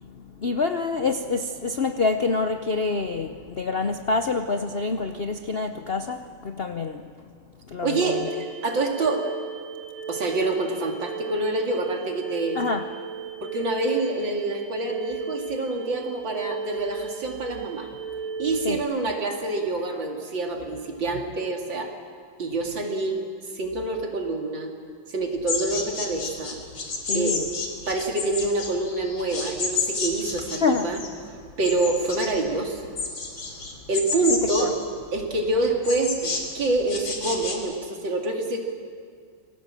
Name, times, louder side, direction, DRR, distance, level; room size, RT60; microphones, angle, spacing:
voice 1, 0.0-7.1 7.7-8.3 12.5-12.9 18.6-18.8 27.1-27.5 30.6-30.9 34.3-34.7, left 4 dB, 55° left, 7 dB, 0.6 m, -27 dB
voice 2, 7.8-9.3 10.1-12.6 13.4-17.9 18.4-21.9 22.4-23.3 23.5-24.7 25.1-26.6 27.1-27.4 27.9-31.0 31.6-32.9 33.9-34.8 35.1-38.6, right 2 dB, 70° right, 2 dB, 3.3 m, -26 dB
sound 1, 7.9-18.8, right 4 dB, 40° right, 2.1 m, -35 dB
sound 2, 25.5-37.5, left 4 dB, 85° left, 3.7 m, -31 dB
27.5 x 19.5 x 7.6 m, 2.1 s
omnidirectional pair, 2.1 m